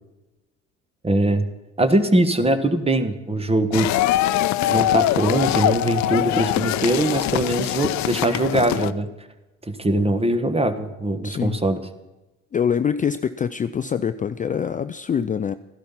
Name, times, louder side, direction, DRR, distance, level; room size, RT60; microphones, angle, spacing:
voice 1, 1.0-1.4 1.8-3.9 4.7-9.1 9.7-11.8, right 1 dB, 15° right, 1.4 m, -21 dB
sound 1, 3.7-8.9, left 14 dB, 60° left, 0.7 m, -22 dB
voice 2, 11.2-11.6 12.5-15.5, left 7 dB, 25° left, 0.5 m, -24 dB
14.0 x 12.0 x 5.7 m
supercardioid pair, 75°, 33 cm